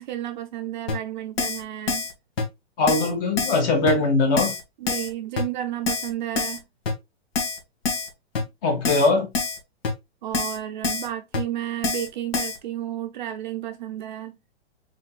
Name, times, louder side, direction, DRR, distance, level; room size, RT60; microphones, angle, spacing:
voice 1, 0.0-2.0 4.8-6.6 10.2-14.4, right 12 dB, 45° right, 0.6 m, -32 dB
Keyboard (musical), 0.9-1.0 1.4-1.6 1.9-2.1 2.4-2.5 2.9-3.1 3.4-3.6 3.9-4.0 4.4-4.6 4.9-5.1 5.4-5.5 5.9-6.1 6.4-6.6 6.9-7.0 7.4-7.6 7.9-8.1 8.4-8.5 8.9-9.1 9.4-9.6 9.8-9.9 10.3-10.6 10.8-11.1 11.3-11.4 11.8-12.1 12.3-12.6, left 4 dB, 60° left, 1.9 m, -26 dB
voice 2, 2.8-4.5 8.6-9.3, left 3 dB, 30° left, 1.7 m, -21 dB
4.2 x 4.2 x 2.3 m
hypercardioid pair, 155°, 34 cm